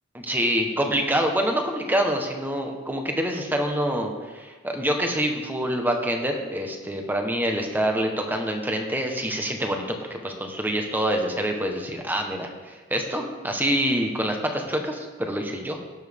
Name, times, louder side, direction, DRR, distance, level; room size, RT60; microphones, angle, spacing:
voice 1, 0.1-15.8, equal, 10° right, 3 dB, 1.2 m, -26 dB
18.0 x 7.3 x 3.6 m, 1.3 s
head